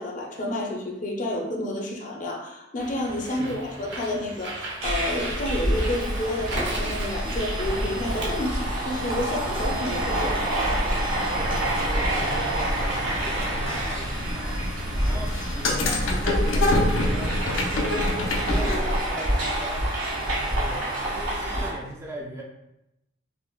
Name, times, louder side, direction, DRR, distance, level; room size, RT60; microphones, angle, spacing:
voice 1, 0.0-10.5, left 1 dB, 40° left, 0 dB, 0.5 m, -30 dB
Bird, 2.8-8.3, right 1 dB, 60° right, 0.8 m, -35 dB
voice 2, 3.3-3.6 11.3-19.9 20.2-22.4, right 1 dB, 15° right, -2 dB, 0.4 m, -40 dB
sound 1, 4.8-21.7, right 1 dB, 80° right, 1.3 m, -28 dB
sound 2, 7.0-19.0, left 1 dB, 90° left, 0.5 m, -29 dB
5.0 x 2.0 x 2.3 m, 0.88 s
head